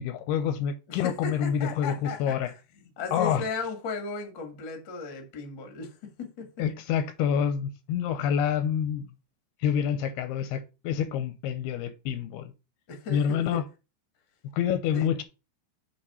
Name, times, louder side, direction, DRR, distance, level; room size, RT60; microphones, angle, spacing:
voice 1, 0.0-2.5 3.1-3.4 6.6-9.1 9.6-12.5 13.1-13.6 14.5-15.2, left 8 dB, 80° left, 2.5 m, -27 dB
voice 2, 0.9-6.6 12.9-13.6 14.9-15.1, left 4 dB, 55° left, 1.3 m, -36 dB
7.9 x 3.6 x 5.7 m
omnidirectional pair, 4.8 m